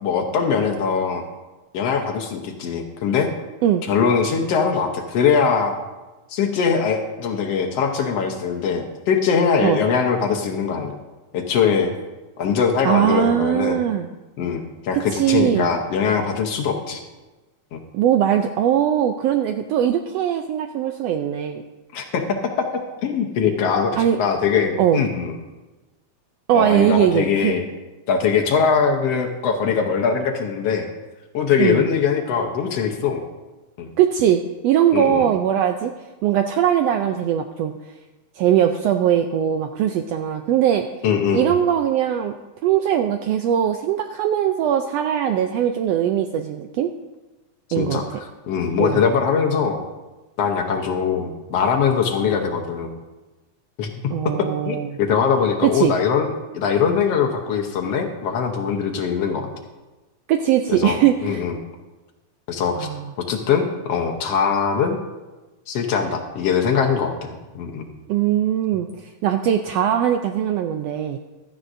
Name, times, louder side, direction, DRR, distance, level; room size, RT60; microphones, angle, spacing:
voice 1, 0.0-1.2 1.7-3.3 3.9-5.8 6.3-11.0 11.3-11.9 12.4-13.8 14.4-17.0 17.7-17.8 21.9-25.4 26.5-27.6 28.1-30.9 31.3-33.2 33.8-33.9 34.9-35.3 41.0-41.5 47.7-48.0 48.5-49.8 50.4-52.9 53.8-59.5 60.7-61.6 62.5-62.9 63.3-65.0 65.7-67.9, left 6 dB, 65° left, 2 dB, 1.8 m, -22 dB
voice 2, 12.8-14.1 15.1-15.7 17.9-21.6 24.0-24.2 24.8-25.0 26.5-27.5 31.6-31.8 34.0-35.9 36.2-37.7 38.4-40.9 41.3-42.3 42.6-46.9 47.7-48.0 48.8-49.0 54.1-55.0 55.6-55.9 60.3-61.4 62.8-63.1 68.1-71.2, right 10 dB, 85° right, 6 dB, 1.4 m, -20 dB
16.0 x 12.5 x 2.6 m, 1.2 s
omnidirectional pair, 3.4 m